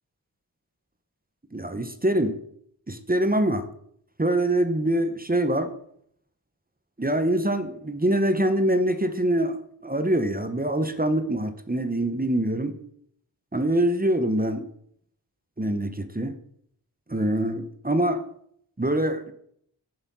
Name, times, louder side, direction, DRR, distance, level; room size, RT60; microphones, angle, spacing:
voice 1, 1.5-2.4 2.9-3.6 4.2-5.7 7.0-9.6 9.8-12.8 13.5-14.7 15.6-16.3 17.1-18.2 18.8-19.3, right 1 dB, 20° right, 9 dB, 0.9 m, -24 dB
7.3 x 7.0 x 5.5 m, 0.68 s
wide cardioid pair, 50°, 41 cm